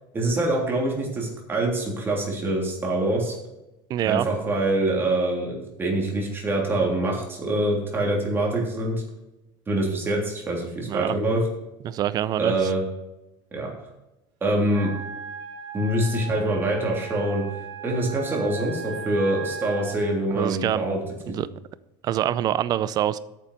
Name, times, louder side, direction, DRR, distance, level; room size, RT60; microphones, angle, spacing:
voice 1, 0.1-3.3 4.0-9.0 9.7-11.4 12.4-12.8 13.5-13.7 14.4-14.9 15.7-17.4 17.8-21.0 21.3-21.4, right 1 dB, 20° right, -1 dB, 3.2 m, -25 dB
voice 2, 3.9-4.3 10.8-11.1 11.8-12.7 20.3-20.9 21.3-21.5 22.0-23.2, right 11 dB, 35° right, 17 dB, 0.5 m, -25 dB
Wind instrument woodwind instrument, 14.7-20.1, right 5 dB, 65° right, 2.3 m, -37 dB
9.0 x 7.1 x 6.6 m, 0.96 s
supercardioid pair, 140°, 12 cm